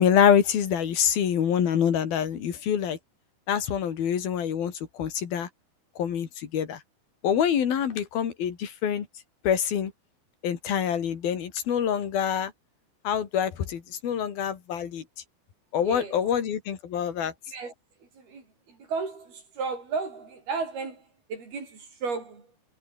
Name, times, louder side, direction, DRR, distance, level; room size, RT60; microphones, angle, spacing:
voice 1, 0.0-3.0 3.5-5.5 6.0-6.8 7.2-9.1 9.4-9.9 10.4-12.5 13.0-15.0 15.7-17.3, left 8 dB, 75° left, 4.5 m, -25 dB
voice 2, 15.8-16.3 17.5-17.7 18.0-22.5, right 4 dB, 85° right, 8.8 m, -34 dB
omnidirectional pair, 4.3 m